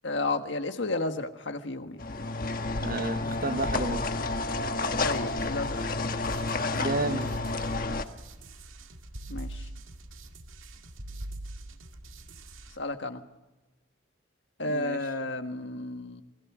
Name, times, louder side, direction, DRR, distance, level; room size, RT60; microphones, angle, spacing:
voice 1, 0.0-2.0 5.0-5.8 9.3-9.6 12.8-13.2 14.6-16.2, left 2 dB, 65° left, 1.6 m, -32 dB
sound 1, 2.0-8.0, left 3 dB, 45° left, 1.3 m, -30 dB
voice 2, 2.8-4.1 6.8-7.3 14.6-15.0, right 2 dB, 45° right, 1.0 m, -31 dB
sound 2, 5.0-12.8, right 2 dB, 90° right, 2.1 m, -49 dB
sound 3, 5.4-6.4 7.3-8.2 9.1-10.2 11.0-12.1, right 1 dB, 65° right, 3.6 m, -41 dB
28.0 x 21.0 x 6.1 m
head